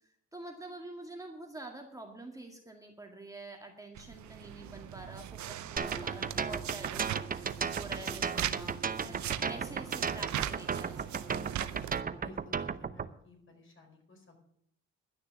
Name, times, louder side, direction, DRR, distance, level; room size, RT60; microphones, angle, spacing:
voice 1, 0.3-11.0, right 2 dB, 10° right, 2 dB, 2.0 m, -47 dB
sound 1, 4.0-12.0, right 11 dB, 70° right, 0.8 m, -40 dB
Bowed string instrument, 5.7-12.5, right 2 dB, 10° left, 2.7 m, -52 dB
sound 2, 5.8-13.1, right 6 dB, 30° right, 0.7 m, -34 dB
voice 2, 12.2-14.4, left 2 dB, 40° left, 2 dB, 4.7 m, -54 dB
11.5 x 6.6 x 9.3 m, 0.69 s
cardioid pair, 90°, 30 cm